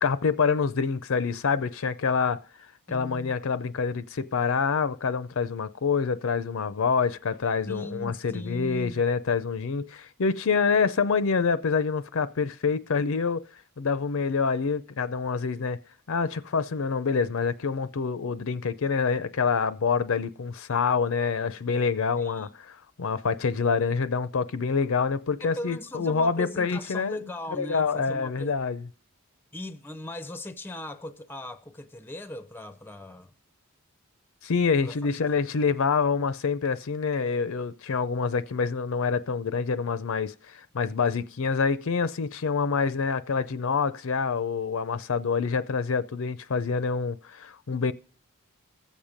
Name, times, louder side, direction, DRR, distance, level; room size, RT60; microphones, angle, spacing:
voice 1, 0.0-2.4 2.9-13.5 13.8-15.8 16.1-27.2 27.5-28.8 34.4-47.9, left 5 dB, 65° left, 0.5 m, -26 dB
voice 2, 2.9-3.4 7.7-9.0 22.2-22.5 25.4-28.6 29.5-33.3 34.8-35.2, left 1 dB, 10° left, 0.5 m, -39 dB
15.0 x 7.2 x 5.1 m
head